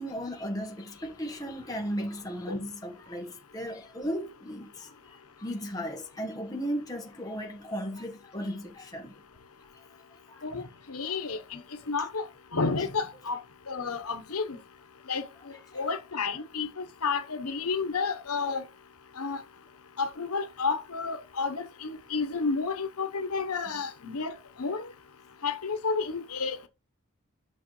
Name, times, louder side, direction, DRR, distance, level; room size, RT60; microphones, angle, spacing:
voice 1, 0.0-4.9 5.4-9.1 10.3-10.4 15.7-15.8, equal, 15° left, 1.3 m, -35 dB
voice 2, 10.9-11.6 11.9-12.2 12.5-13.4 13.7-14.6 15.1-15.3 15.7-16.7 17.0-18.6 19.2-19.4 20.0-24.3 24.6-24.9 25.4-26.7, left 4 dB, 85° left, 1.1 m, -31 dB
11.0 x 6.2 x 3.2 m
head